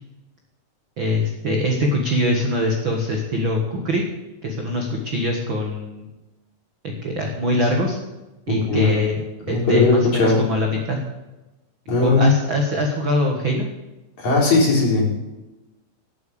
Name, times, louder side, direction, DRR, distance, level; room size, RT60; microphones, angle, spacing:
voice 1, 1.0-4.0 4.4-6.1 6.8-8.0 8.5-9.2 9.5-11.0 12.0-13.7, left 1 dB, 60° right, 1 dB, 1.3 m, -22 dB
voice 2, 8.5-8.9 9.5-10.4 11.9-12.2 14.2-15.3, left 3 dB, 45° left, -3 dB, 4.6 m, -18 dB
10.5 x 8.6 x 8.6 m, 1.1 s
omnidirectional pair, 4.7 m